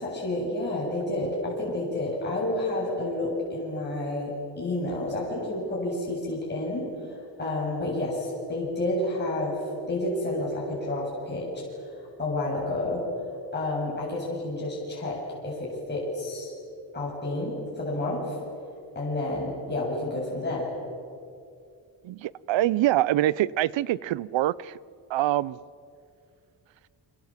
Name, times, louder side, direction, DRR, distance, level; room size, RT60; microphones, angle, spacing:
voice 1, 0.0-9.6 9.9-13.0 13.5-16.5 16.9-18.4 19.0-20.7, left 1 dB, 25° left, -5 dB, 7.3 m, -30 dB
voice 2, 22.0-24.8 25.1-25.6, right 14 dB, 90° right, 21 dB, 0.7 m, -25 dB
29.0 x 25.5 x 7.5 m, 2.4 s
cardioid pair, 130°, 44 cm